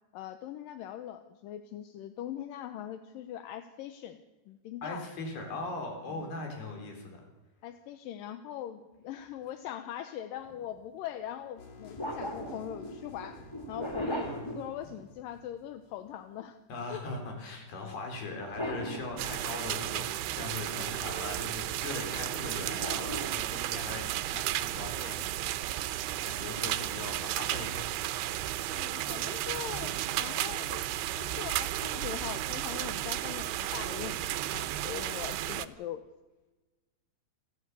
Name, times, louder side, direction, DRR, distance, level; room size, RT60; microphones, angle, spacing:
voice 1, 0.1-5.1 6.1-6.3 7.6-14.3 14.5-16.6 16.9-17.1 28.7-36.0, left 11 dB, 75° left, 9 dB, 2.4 m, -41 dB
voice 2, 4.8-7.2 14.2-14.4 16.7-25.8 26.2-27.9 30.3-30.4, left 3 dB, 90° left, 3 dB, 6.0 m, -40 dB
sound 1, 10.4-10.6 12.0-15.3 18.3-19.8 22.8-24.0, equal, 10° left, 1.7 m, -38 dB
sound 2, 11.6-16.3, left 5 dB, 50° left, 3.1 m, -52 dB
sound 3, 19.2-35.7, right 14 dB, 85° right, 2.7 m, -33 dB
29.5 x 11.0 x 8.3 m, 1.1 s
omnidirectional pair, 4.4 m